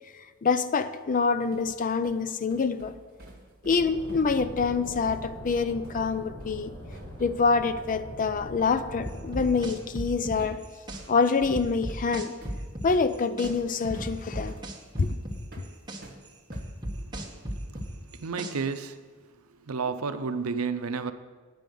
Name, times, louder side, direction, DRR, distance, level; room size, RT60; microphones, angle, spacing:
voice 1, 0.4-2.9 3.6-6.7 7.2-10.6 11.1-12.4 12.8-14.6 15.0-15.2, left 4 dB, 40° left, 0.4 m, -26 dB
sound 1, 1.1-7.4 7.6-7.8 9.8-10.0 10.4-16.7 17.1-18.1, right 1 dB, 50° right, 1.6 m, -48 dB
sound 2, 3.7-9.7, left 1 dB, 75° left, 3.3 m, -42 dB
sound 3, 9.0-11.0 11.5-13.5 13.8-16.0 16.5-18.8, equal, 20° right, 1.1 m, -35 dB
voice 2, 18.1-19.0 19.7-21.1, right 5 dB, 90° right, 0.6 m, -31 dB
9.1 x 5.3 x 7.7 m
head